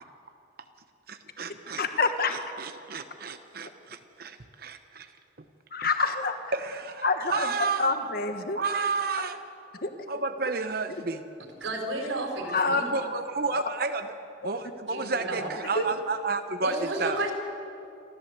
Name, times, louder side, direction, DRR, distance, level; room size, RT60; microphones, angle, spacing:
voice 1, 1.1-1.8 2.3-5.1 6.5-7.0 7.3-7.9 8.5-9.4 10.1-11.2 12.9-14.1 14.4-17.2, right 4 dB, 50° right, 8 dB, 0.9 m, -31 dB
voice 2, 1.8-2.3 5.7-6.5 7.0-7.5 7.8-8.6 9.7-10.2 12.5-12.8 15.7-15.9, left 3 dB, 50° left, 7 dB, 1.4 m, -27 dB
voice 3, 11.6-12.9 14.9-15.5 16.6-17.3, right 2 dB, 80° right, 2 dB, 4.4 m, -32 dB
27.5 x 14.5 x 8.0 m, 2.7 s
head